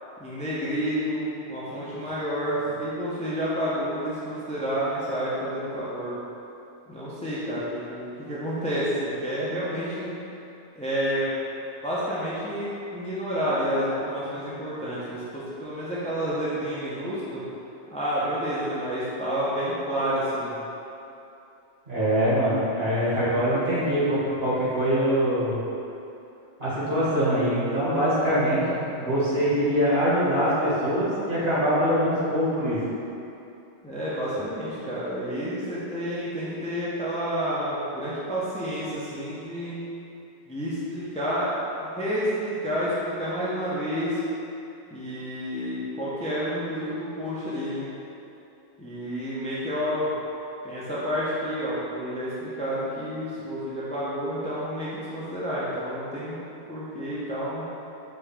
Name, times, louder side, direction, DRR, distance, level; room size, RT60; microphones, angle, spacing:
voice 1, 0.2-6.1 6.9-10.1 10.8-11.3 11.8-17.4 17.9-20.5 33.8-39.8 40.5-41.5 42.0-44.2 44.9-47.9 48.8-50.1 50.6-56.4 56.7-57.6, equal, 5° left, -9 dB, 0.6 m, -29 dB
voice 2, 21.9-25.6 26.6-32.8, equal, 60° right, -12 dB, 2.0 m, -23 dB
5.4 x 2.9 x 3.4 m, 2.8 s
omnidirectional pair, 1.2 m